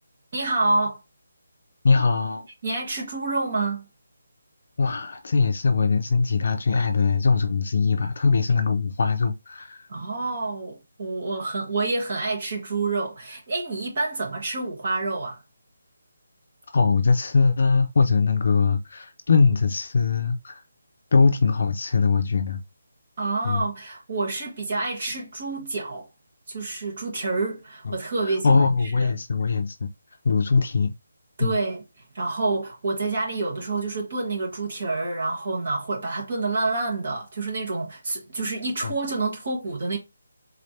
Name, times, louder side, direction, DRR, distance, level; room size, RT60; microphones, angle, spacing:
voice 1, 0.3-1.0 2.6-3.8 9.9-15.4 23.2-26.1 26.5-29.1 31.4-31.8 32.1-40.0, right 3 dB, 40° right, 1.4 m, -28 dB
voice 2, 1.8-2.5 4.8-9.8 16.7-20.6 21.1-22.6 23.4-23.6 27.9-28.0 28.2-29.9 30.2-30.9 31.4-31.6 38.8-38.9, left 4 dB, 50° left, 0.5 m, -21 dB
3.8 x 3.3 x 2.8 m
hypercardioid pair, 175°, 0 cm